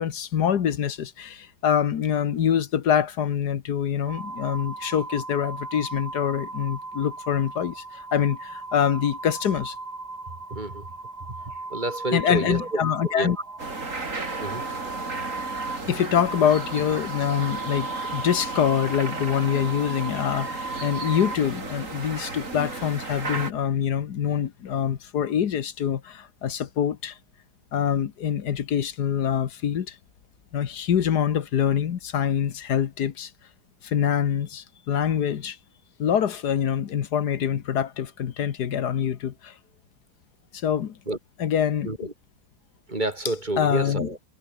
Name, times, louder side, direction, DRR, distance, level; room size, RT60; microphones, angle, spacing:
voice 1, 0.0-9.8 12.1-13.4 15.9-27.2 27.7-30.0 30.5-33.3 33.8-35.6 36.0-39.5 40.5-41.0 41.4-42.1 43.6-44.1, left 8 dB, 80° left, 1.8 m, -25 dB
sound 1, 4.1-21.4, right 3 dB, 75° right, 5.5 m, -37 dB
voice 2, 10.5-10.9 11.7-13.3 14.4-14.6 41.1-41.2 41.8-42.1 42.9-44.2, right 2 dB, 30° right, 3.0 m, -29 dB
sound 2, 13.6-23.5, right 3 dB, 50° right, 3.8 m, -34 dB
omnidirectional pair, 1.7 m